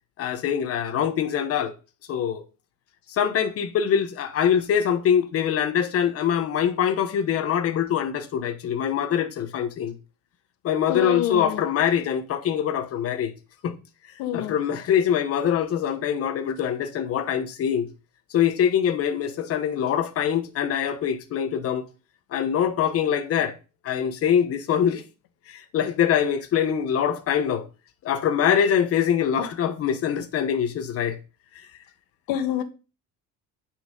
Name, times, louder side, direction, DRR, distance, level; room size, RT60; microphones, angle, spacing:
voice 1, 0.2-1.7 2.1-2.4 3.1-9.9 10.6-13.3 13.6-13.7 14.3-17.9 18.3-21.8 22.3-23.5 23.8-25.0 25.5-27.7 28.0-31.2, left 8 dB, 40° left, 1.1 m, -24 dB
voice 2, 10.9-11.6 14.2-14.5 32.3-32.6, left 10 dB, 85° left, 1.6 m, -26 dB
8.6 x 5.8 x 3.9 m
cardioid pair, 165°, 35 cm